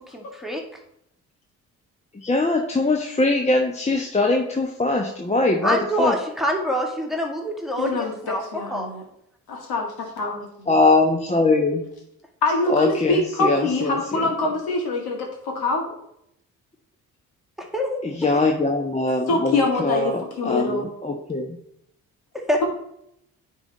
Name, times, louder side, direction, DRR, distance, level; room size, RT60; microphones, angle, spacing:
voice 1, 0.1-0.6 5.6-8.4 8.7-8.9 17.7-17.9 18.3-18.4 22.5-22.6, equal, ahead, 0 dB, 2.0 m, -25 dB
voice 2, 2.1-6.2 10.7-11.9 12.7-14.3 18.0-21.6, left 2 dB, 15° left, 1 dB, 1.1 m, -22 dB
voice 3, 7.8-9.0 9.5-10.7 12.4-15.9 19.3-20.9, left 2 dB, 60° left, 1 dB, 2.1 m, -25 dB
9.7 x 3.8 x 4.2 m, 0.74 s
hypercardioid pair, 50°, 41 cm